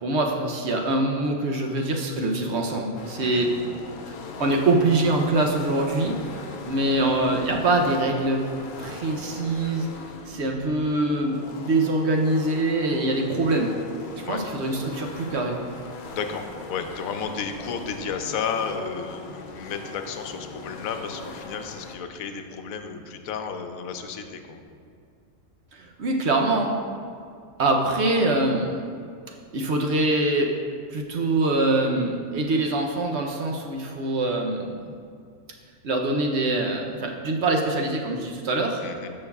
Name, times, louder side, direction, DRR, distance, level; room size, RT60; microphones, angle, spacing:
voice 1, 0.0-3.5 4.1-4.2 4.4-6.2 6.6-8.4 8.8-9.9 10.3-13.7 14.2-15.6 25.7-26.8 27.6-28.8 29.5-30.5 30.9-34.9 35.8-38.8, right 2 dB, 60° right, 2 dB, 0.9 m, -24 dB
sound 1, 2.9-21.9, left 4 dB, 60° left, 0.5 m, -40 dB
voice 2, 16.1-24.6 38.8-39.1, left 6 dB, 85° left, 6 dB, 1.1 m, -32 dB
13.5 x 5.4 x 2.3 m, 2.3 s
omnidirectional pair, 1.4 m